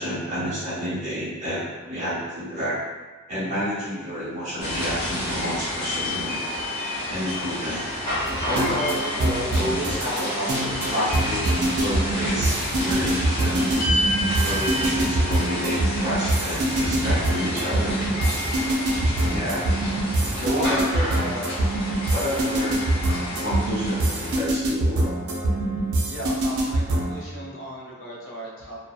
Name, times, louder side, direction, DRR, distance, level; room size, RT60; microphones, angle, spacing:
voice 1, 0.0-2.8 3.3-6.4 7.1-7.9 8.4-11.5 11.8-13.8 14.4-18.0 19.3-19.7 20.4-21.4 22.1-22.8 23.4-25.1, equal, 35° right, -10 dB, 0.9 m, -29 dB
sound 1, 4.6-24.4, left 1 dB, 30° left, 0.9 m, -29 dB
sound 2, 8.3-27.2, right 1 dB, 80° right, 0.4 m, -25 dB
voice 2, 20.6-20.9 26.1-28.8, right 1 dB, 55° left, -4 dB, 0.5 m, -37 dB
2.6 x 2.0 x 2.3 m, 1.3 s
head